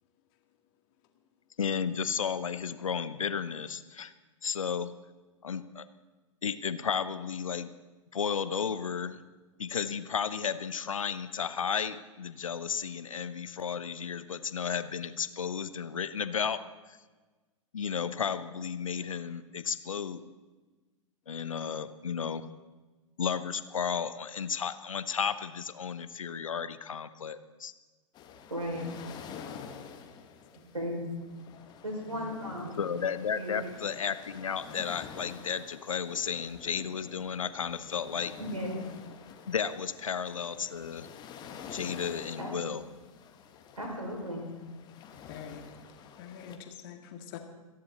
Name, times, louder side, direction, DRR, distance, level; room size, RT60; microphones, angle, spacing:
voice 1, 1.6-4.1 4.4-4.9 5.4-5.8 6.4-7.7 8.1-9.2 9.6-16.6 17.7-20.2 21.3-22.4 23.2-27.7 32.8-38.3 39.5-41.1 41.7-42.8, left 7 dB, 70° left, 13 dB, 0.9 m, -33 dB
sound 1, 28.1-46.6, left 7 dB, 25° left, 1.4 m, -49 dB
voice 2, 28.5-28.9 30.7-31.1 31.8-32.7 33.4-33.7 38.4-38.8 42.4-42.5 43.8-44.4, equal, 80° right, 0 dB, 5.7 m, -35 dB
voice 3, 29.3-29.7 32.1-32.6 45.3-45.6 46.2-47.4, left 8 dB, 40° left, 4 dB, 1.9 m, -45 dB
26.5 x 10.5 x 4.2 m, 1.3 s
figure-of-eight pair, 110°, 18 cm